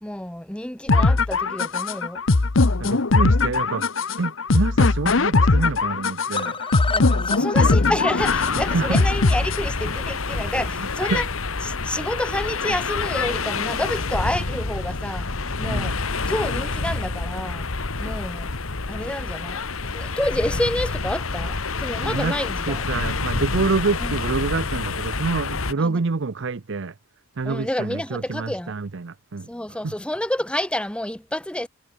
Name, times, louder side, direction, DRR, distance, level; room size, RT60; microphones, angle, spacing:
voice 1, 0.0-2.2 6.9-11.3 11.6-15.3 15.6-15.9 16.3-17.7 18.0-18.5 18.9-19.6 19.9-22.8 24.0-24.1 25.8-26.0 27.4-28.7 29.5-31.7, left 1 dB, 5° left, 0.7 m, -29 dB
sound 1, 0.9-9.9, left 3 dB, 65° left, 1.0 m, -20 dB
voice 2, 2.8-3.9 4.2-6.6 8.7-9.0 10.5-11.2 12.7-12.8 15.7-16.0 22.0-22.3 22.7-26.9 27.4-29.5 29.8-29.9, right 4 dB, 60° right, 0.7 m, -27 dB
sound 2, 6.3-10.4 10.7-10.8 11.1-11.2 11.5-11.6, left 4 dB, 25° left, 4.5 m, -31 dB
sound 3, 8.2-25.7, left 4 dB, 90° left, 1.7 m, -27 dB
head